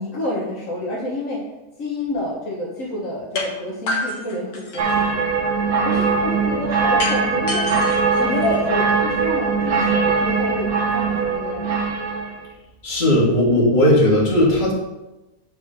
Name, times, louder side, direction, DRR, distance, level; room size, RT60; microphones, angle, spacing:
voice 1, 0.0-1.4 1.8-5.3 5.8-7.7 8.2-11.8, left 1 dB, 60° left, -4 dB, 1.5 m, -28 dB
sound 1, 3.4-3.5 3.9-5.1 7.0-9.0, left 2 dB, 85° left, 1.7 m, -28 dB
sound 2, 4.8-12.4, right 5 dB, 75° right, 1.4 m, -21 dB
voice 2, 12.8-14.7, left 1 dB, 30° left, -4 dB, 2.0 m, -16 dB
5.0 x 4.8 x 6.3 m, 0.99 s
omnidirectional pair, 1.6 m